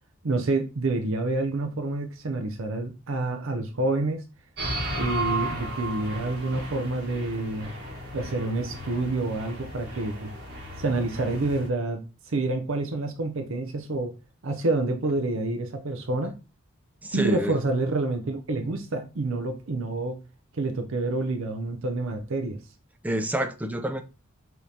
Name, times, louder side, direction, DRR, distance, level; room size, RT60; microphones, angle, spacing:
voice 1, 0.2-4.2 5.0-7.7 8.1-10.3 10.8-12.0 12.3-14.1 14.4-16.3 17.1-20.2 20.6-22.6, right 2 dB, 65° right, 0.6 m, -28 dB
sound 1, 4.6-11.7, right 1 dB, 50° right, 1.4 m, -34 dB
voice 2, 17.0-17.5 23.0-24.0, right 1 dB, 5° right, 0.4 m, -28 dB
5.0 x 3.1 x 2.7 m
head